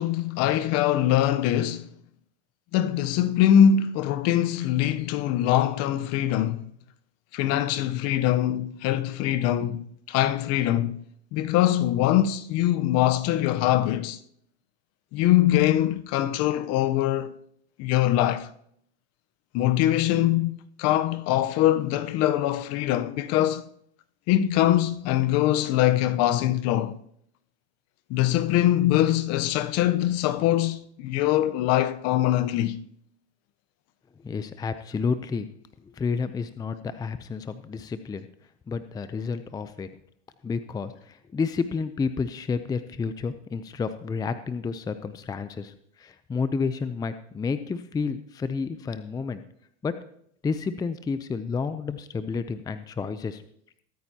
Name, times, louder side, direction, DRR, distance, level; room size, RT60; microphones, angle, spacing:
voice 1, 0.0-1.9 2.7-6.6 7.3-11.0 11.3-14.2 15.1-17.3 17.8-18.5 19.5-23.7 24.3-27.0 28.1-32.7, left 12 dB, 45° left, 0.9 m, -23 dB
voice 2, 34.2-35.5 35.8-38.3 38.7-39.9 40.4-49.4 49.8-50.0 50.4-53.4, left 5 dB, 10° left, 0.5 m, -30 dB
22.5 x 8.9 x 2.9 m
hypercardioid pair, 110°, 34 cm